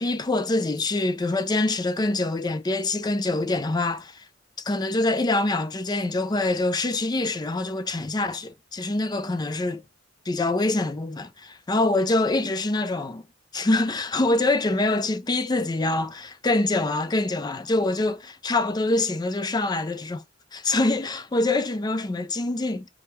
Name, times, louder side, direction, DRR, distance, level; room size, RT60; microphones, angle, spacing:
voice 1, 0.0-4.2 4.6-9.8 10.3-13.2 13.5-20.2 20.5-22.9, left 2 dB, 20° left, 0.4 m, -25 dB
3.5 x 2.3 x 4.2 m
head